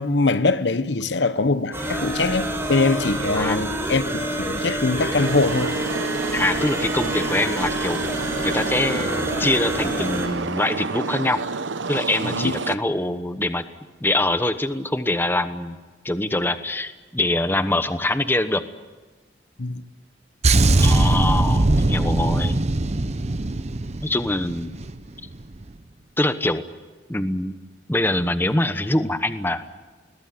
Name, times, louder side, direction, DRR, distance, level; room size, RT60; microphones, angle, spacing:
voice 1, 0.0-5.8 12.2-12.5 19.6-19.8, left 3 dB, 70° left, 1.0 m, -23 dB
sound 1, 1.7-10.3, right 1 dB, 15° right, 5.6 m, -27 dB
sound 2, 5.2-12.8, right 4 dB, 85° right, 0.8 m, -29 dB
voice 2, 6.3-8.0 8.4-11.4 11.9-13.6 14.0-15.8 16.0-18.6 20.8-22.6 24.0-24.7 26.2-26.7 27.1-27.5 27.9-29.6, left 1 dB, 10° left, 1.0 m, -24 dB
sound 3, 20.4-25.0 25.3-25.5, right 2 dB, 35° right, 0.8 m, -20 dB
21.5 x 20.5 x 9.4 m
head